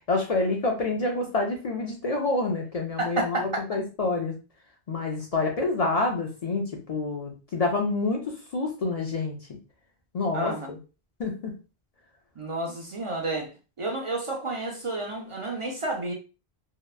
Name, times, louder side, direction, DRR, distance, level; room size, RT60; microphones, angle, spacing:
voice 1, 0.1-4.3 4.9-8.2 8.5-9.4 10.1-10.8 11.2-11.5, left 3 dB, 55° left, 0.4 m, -27 dB
voice 2, 3.0-3.4 10.3-10.7 12.4-13.5 13.8-16.1, right 2 dB, 60° right, 0.3 m, -30 dB
2.8 x 2.2 x 2.3 m
omnidirectional pair, 1.1 m